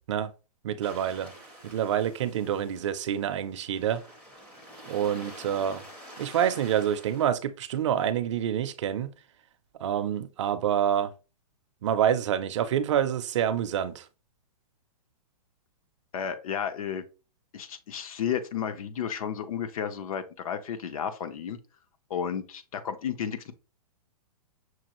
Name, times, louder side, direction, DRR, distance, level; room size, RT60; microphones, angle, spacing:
voice 1, 0.6-1.3 1.6-4.0 4.8-5.9 6.2-9.1 9.8-11.1 11.8-14.1, right 9 dB, 50° right, 0.5 m, -27 dB
sound 1, 0.8-7.2, equal, 5° left, 0.5 m, -48 dB
voice 2, 16.1-17.0 17.5-21.6 22.1-23.5, left 8 dB, 60° left, 0.7 m, -32 dB
6.0 x 2.4 x 3.0 m
hypercardioid pair, 165°, 20 cm